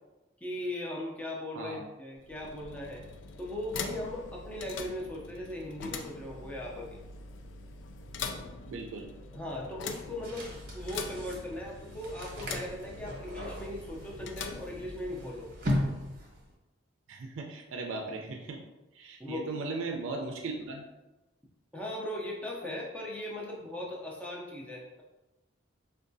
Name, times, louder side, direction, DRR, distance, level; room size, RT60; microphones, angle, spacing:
voice 1, 0.4-3.0 3.4-7.0 9.3-15.5 19.2-19.4 21.7-25.0, left 1 dB, 5° left, -3 dB, 0.5 m, -38 dB
sound 1, 2.1-15.4, left 4 dB, 65° left, 0.3 m, -43 dB
voice 2, 8.7-9.1 17.1-18.6 18.9-20.8, right 3 dB, 80° right, 2 dB, 0.4 m, -37 dB
sound 2, 10.2-16.5, left 1 dB, 45° right, 0.8 m, -37 dB
4.6 x 2.2 x 2.6 m, 1.0 s
head